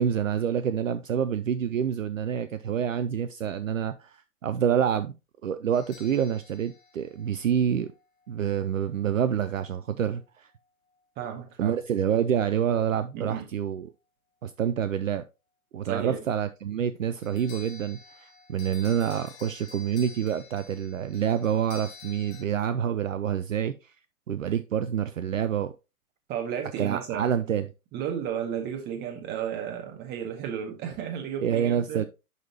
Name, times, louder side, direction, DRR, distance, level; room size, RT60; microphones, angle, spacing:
voice 1, 0.0-5.2 5.4-7.9 8.3-10.5 11.6-13.9 14.4-15.2 15.7-23.7 24.3-25.7 26.8-27.7 31.4-32.0, right 8 dB, 60° right, 0.6 m, -27 dB
sound 1, 5.7-8.0 17.2-22.4, left 4 dB, 25° left, 1.6 m, -49 dB
voice 2, 11.1-11.8 13.1-13.5 15.8-16.3 26.3-27.3 27.9-32.0, right 8 dB, 20° right, 1.8 m, -33 dB
11.0 x 4.1 x 2.8 m
figure-of-eight pair, 115°, 44 cm